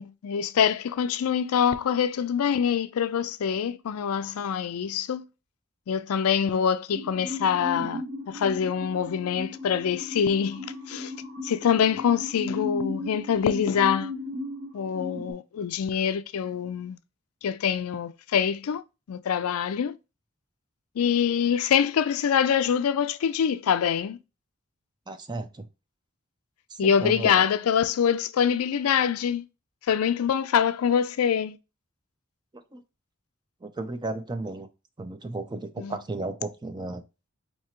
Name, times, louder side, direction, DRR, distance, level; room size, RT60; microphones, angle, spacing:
voice 1, 0.0-5.3 5.9-11.1 11.4-14.1 14.7-17.0 17.4-18.8 19.1-20.0 21.0-24.2 26.8-29.4 29.9-31.6 35.8-35.9, left 8 dB, 85° left, 0.4 m, -25 dB
sound 1, 6.9-15.3, left 2 dB, 40° right, 0.8 m, -36 dB
voice 2, 25.1-25.7 26.7-27.5 32.5-32.8 33.6-34.7 35.0-37.0, right 2 dB, 20° right, 0.5 m, -34 dB
4.6 x 2.8 x 2.8 m
head